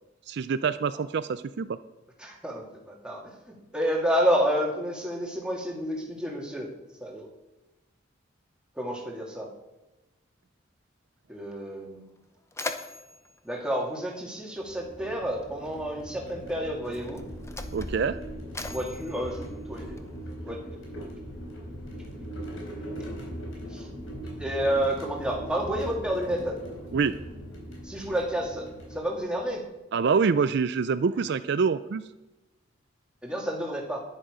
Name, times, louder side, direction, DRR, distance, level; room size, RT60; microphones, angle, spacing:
voice 1, 0.3-1.8 17.7-18.2 26.9-27.2 29.9-32.0, right 5 dB, 60° right, 13 dB, 0.4 m, -25 dB
voice 2, 2.2-3.3 3.7-6.7 7.0-7.3 8.8-9.5 11.3-12.0 13.4-17.2 18.7-20.0 20.4-20.6 22.4-23.0 23.7-23.9 24.4-26.6 27.8-29.6 33.2-34.0, equal, 5° right, -1 dB, 2.2 m, -30 dB
Mechanisms, 12.1-14.8 15.8-15.9 16.8-20.3, left 2 dB, 15° left, 0.8 m, -41 dB
sound 1, 14.6-29.6, equal, 85° left, 4.1 m, -40 dB
11.0 x 10.5 x 5.0 m, 1.0 s
head